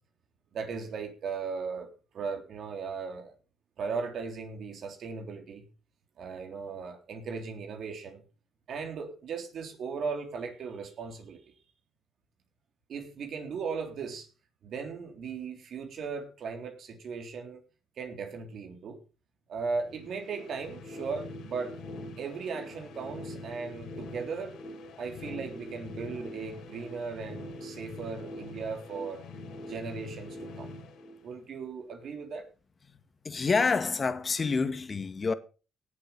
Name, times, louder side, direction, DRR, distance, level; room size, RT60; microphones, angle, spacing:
voice 1, 0.5-1.9 2.1-3.3 3.8-5.7 6.2-8.2 8.7-11.4 12.9-14.3 14.6-17.6 18.0-19.0 19.5-21.7 22.2-24.6 25.0-29.3 29.7-30.7 31.2-32.5, right 5 dB, 65° right, 3.6 m, -37 dB
sound 1, 19.8-31.7, left 2 dB, 80° left, 4.7 m, -43 dB
voice 2, 33.2-35.3, left 4 dB, 35° left, 2.0 m, -27 dB
18.0 x 7.8 x 5.5 m
cardioid pair, 90°, 0 cm